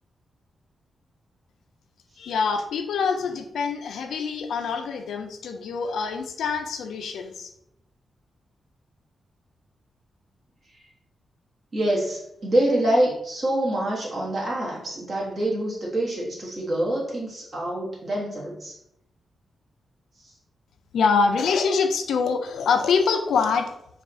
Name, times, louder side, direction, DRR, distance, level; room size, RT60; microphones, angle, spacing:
voice 1, 2.2-7.5 20.9-23.7, left 5 dB, 90° left, 5 dB, 0.4 m, -25 dB
voice 2, 11.7-18.7, right 1 dB, 40° right, -4 dB, 1.4 m, -26 dB
3.4 x 2.4 x 4.2 m, 0.76 s
wide cardioid pair, 130°, 0 cm